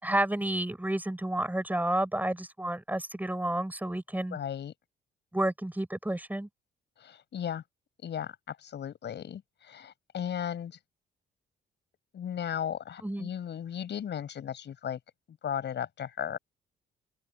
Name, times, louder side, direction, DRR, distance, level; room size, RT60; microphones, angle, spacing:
voice 1, 0.0-4.4 5.3-6.5 13.0-13.3, right 1 dB, 10° right, 6.9 m, -30 dB
voice 2, 4.3-4.7 7.0-7.6 8.0-10.8 12.1-15.0 15.4-16.4, left 9 dB, 60° left, 7.3 m, -36 dB
open air
cardioid pair, 90°, 20 cm